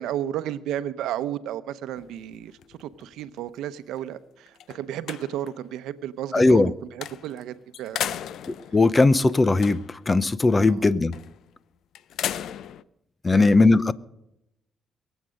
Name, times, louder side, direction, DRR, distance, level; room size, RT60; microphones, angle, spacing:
voice 1, 0.0-8.2 10.7-10.9 13.3-13.7, right 11 dB, 90° right, 0.8 m, -33 dB
sound 1, 2.0-3.5 4.0-4.1 4.5-5.7 7.0-7.4 7.7-10.1 11.1-11.4 12.0-12.8, left 10 dB, 75° left, 0.5 m, -35 dB
voice 2, 6.3-6.7 8.7-9.8 10.1-11.1 13.2-13.9, left 3 dB, 25° left, 0.7 m, -18 dB
22.0 x 8.2 x 6.4 m
cardioid pair, 90°, 0 cm